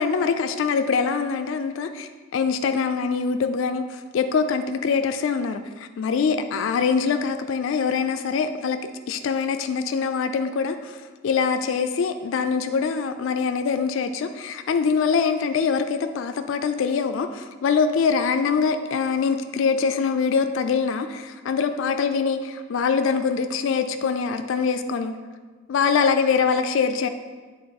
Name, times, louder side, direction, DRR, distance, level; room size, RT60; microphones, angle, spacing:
voice 1, 0.0-8.8 9.1-25.1 25.7-27.1, left 5 dB, 65° left, 8 dB, 0.3 m, -24 dB
8.6 x 3.6 x 4.1 m, 1.4 s
head